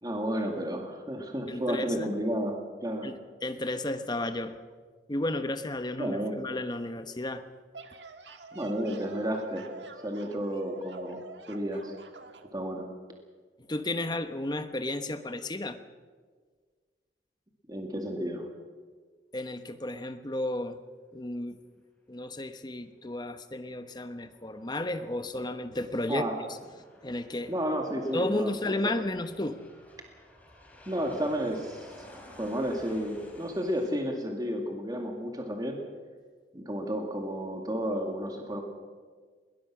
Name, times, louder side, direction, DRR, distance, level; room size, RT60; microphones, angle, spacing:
voice 1, 0.0-3.1 6.0-6.4 8.5-9.7 10.0-11.2 11.5-11.9 12.5-12.9 17.7-18.5 26.1-26.3 27.5-29.0 30.9-31.9 32.4-35.8 36.5-38.6, equal, 20° right, 2 dB, 2.2 m, -32 dB
voice 2, 1.5-2.1 3.0-4.5 5.1-7.4 13.7-15.8 19.3-20.8 21.1-21.6 22.1-26.2 27.0-27.5 28.1-29.6, left 1 dB, 25° left, 9 dB, 1.0 m, -33 dB
sound 1, 7.5-12.5, right 4 dB, 85° right, 1.7 m, -47 dB
Aircraft, 23.7-33.9, left 1 dB, 10° left, 3.8 m, -54 dB
21.5 x 19.5 x 6.1 m, 1.5 s
head